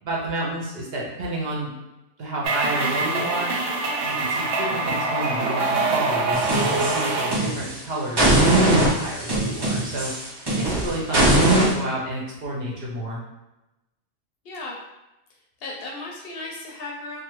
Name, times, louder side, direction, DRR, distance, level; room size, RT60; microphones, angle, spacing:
voice 1, 0.0-1.7 2.2-3.5 4.0-13.2, right 1 dB, 60° right, -4 dB, 0.8 m, -30 dB
sound 1, 2.4-7.4, right 3 dB, 85° right, 0.9 m, -24 dB
sound 2, 6.3-7.8 8.2-11.7, right 2 dB, 40° right, 0.3 m, -20 dB
voice 2, 14.4-14.8 15.6-17.2, left 2 dB, 60° left, -1 dB, 0.7 m, -35 dB
2.4 x 2.3 x 2.9 m, 0.97 s
omnidirectional pair, 1.3 m